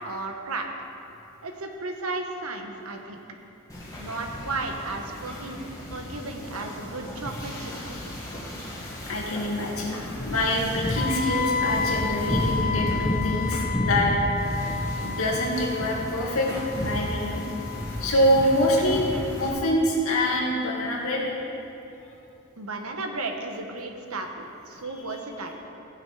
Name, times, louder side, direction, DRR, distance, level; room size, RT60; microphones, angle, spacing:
voice 1, 0.0-0.7 1.4-3.2 4.0-8.1 22.6-25.6, right 2 dB, 80° right, 3 dB, 1.3 m, -34 dB
Wind / Ocean, 3.7-19.5, equal, 15° left, 2.0 m, -32 dB
voice 2, 9.1-14.1 14.4-14.6 15.0-16.5 16.8-17.4 18.0-21.2 24.8-24.9, left 1 dB, 75° left, -3 dB, 2.3 m, -25 dB
Wind instrument woodwind instrument, 11.0-18.9, left 5 dB, 40° left, 0.4 m, -32 dB
16.0 x 7.8 x 4.9 m, 2.8 s
head